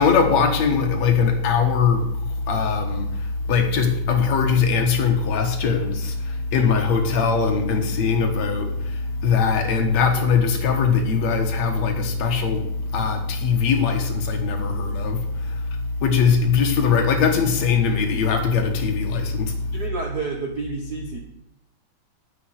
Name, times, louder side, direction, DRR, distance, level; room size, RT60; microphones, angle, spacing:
voice 1, 0.0-19.7, left 5 dB, 60° left, 2.5 m, -21 dB
voice 2, 6.5-6.9 10.1-10.3 19.7-21.2, right 4 dB, 60° right, 1.0 m, -31 dB
9.8 x 7.1 x 7.9 m
omnidirectional pair, 3.6 m